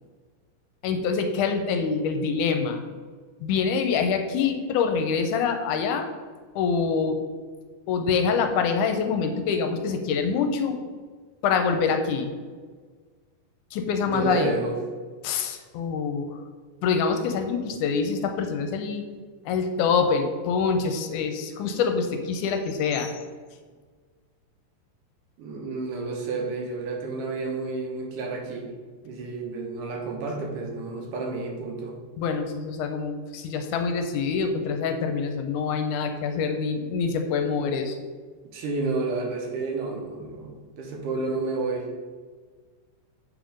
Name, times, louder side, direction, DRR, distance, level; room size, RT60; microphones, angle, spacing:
voice 1, 0.8-2.8 3.4-6.1 6.6-7.2 7.9-10.8 11.4-12.3 13.7-14.5 15.2-16.4 16.8-19.1 19.5-23.1 32.2-38.0, left 5 dB, 80° left, 6 dB, 2.0 m, -25 dB
voice 2, 14.1-14.8 25.4-28.7 29.0-32.0 38.5-41.9, right 3 dB, 85° right, 0 dB, 2.6 m, -30 dB
7.5 x 3.6 x 5.0 m, 1.5 s
omnidirectional pair, 3.7 m